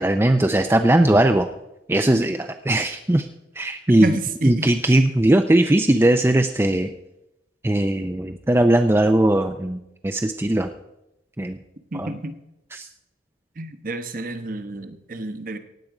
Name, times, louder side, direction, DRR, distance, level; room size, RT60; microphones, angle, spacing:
voice 1, 0.0-1.5 1.9-3.3 3.6-4.2 4.4-6.9 7.6-10.7 11.4-11.6 12.0-12.1 12.7-12.9, right 1 dB, 15° right, 6 dB, 0.4 m, -19 dB
voice 2, 4.0-4.7 11.9-12.4 13.6-15.6, right 2 dB, 45° right, 10 dB, 1.0 m, -29 dB
16.0 x 9.3 x 4.9 m, 0.89 s
head